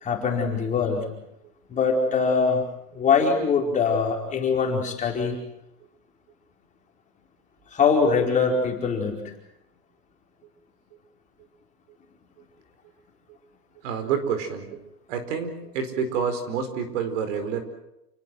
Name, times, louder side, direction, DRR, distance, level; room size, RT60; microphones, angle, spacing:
voice 1, 0.0-1.1 1.7-2.6 2.9-5.4 7.7-9.2, left 5 dB, 15° left, 0 dB, 4.8 m, -23 dB
voice 2, 13.8-14.8 15.1-17.6, right 6 dB, 45° right, 9 dB, 4.7 m, -28 dB
29.5 x 19.5 x 7.8 m, 0.88 s
hypercardioid pair, 145°, 48 cm